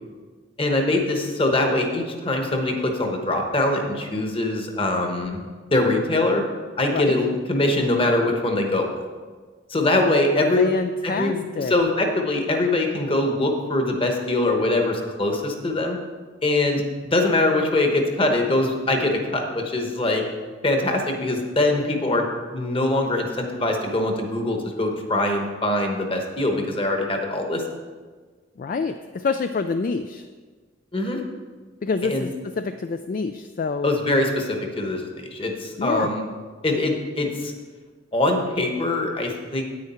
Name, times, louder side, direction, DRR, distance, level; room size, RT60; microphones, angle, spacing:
voice 1, 0.6-5.4 5.7-6.4 6.8-8.9 9.7-10.7 11.0-16.0 16.4-20.2 20.6-27.6 30.9-31.2 32.0-32.3 33.8-36.3 36.6-37.5 38.1-39.6, left 2 dB, 30° left, 3 dB, 1.1 m, -23 dB
voice 2, 10.6-11.7 28.6-30.3 31.8-32.3 32.6-33.9 35.8-36.1, left 4 dB, 45° left, 9 dB, 0.3 m, -26 dB
9.4 x 8.9 x 4.3 m, 1.5 s
head